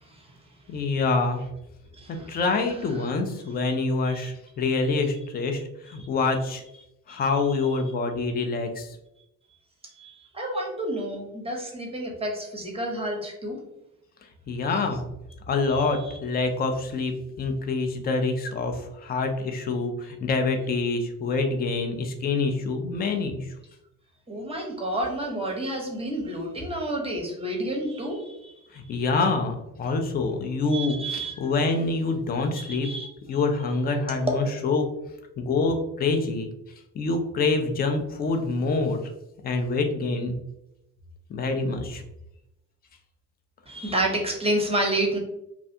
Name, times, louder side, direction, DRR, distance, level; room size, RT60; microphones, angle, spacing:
voice 1, 0.7-1.4 2.3-6.6 7.1-8.9 14.5-15.0 15.5-23.5 28.7-32.9 33.3-34.9 35.4-36.5 37.0-39.0 39.4-40.3 41.3-42.0, left 3 dB, 25° left, 5 dB, 0.3 m, -26 dB
voice 2, 2.0-2.4 4.0-4.3 7.1-7.2 10.0-13.6 15.7-16.2 24.3-28.5 30.7-31.5 32.5-33.1 34.1-34.4 43.7-45.2, right 1 dB, 15° right, 1 dB, 0.7 m, -30 dB
2.3 x 2.3 x 2.6 m, 0.86 s
figure-of-eight pair, 50°, 46 cm